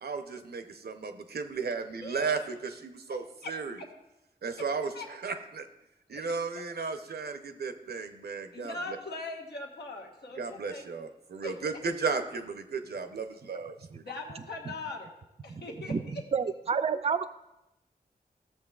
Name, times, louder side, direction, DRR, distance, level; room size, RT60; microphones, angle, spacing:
voice 1, 0.0-3.8 4.4-4.9 5.2-5.7 6.1-8.7 10.4-14.0, right 4 dB, 75° right, 7 dB, 0.7 m, -34 dB
voice 2, 2.0-2.4 3.1-3.9 4.6-4.7 4.9-5.1 6.1-6.3 8.5-10.8 11.4-11.8 14.0-15.1 15.4-16.2, left 2 dB, 90° left, -1 dB, 1.3 m, -41 dB
voice 3, 16.3-17.3, right 6 dB, 40° right, 10 dB, 0.4 m, -29 dB
14.0 x 7.1 x 2.4 m, 0.91 s
wide cardioid pair, 70°, 16 cm